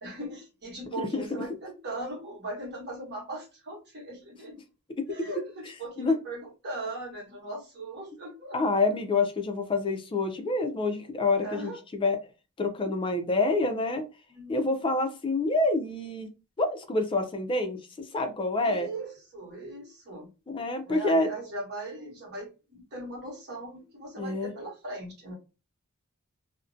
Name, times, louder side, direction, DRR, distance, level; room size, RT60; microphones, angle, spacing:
voice 1, 0.0-4.6 5.1-8.6 11.4-11.8 14.3-14.7 18.6-20.3 20.8-25.3, right 2 dB, 50° right, 1.1 m, -39 dB
voice 2, 8.5-12.2 12.6-14.0 14.5-16.3 16.6-17.8 18.1-18.9 20.5-21.3 24.2-24.5, left 2 dB, 25° left, 0.4 m, -27 dB
2.5 x 2.1 x 2.5 m
head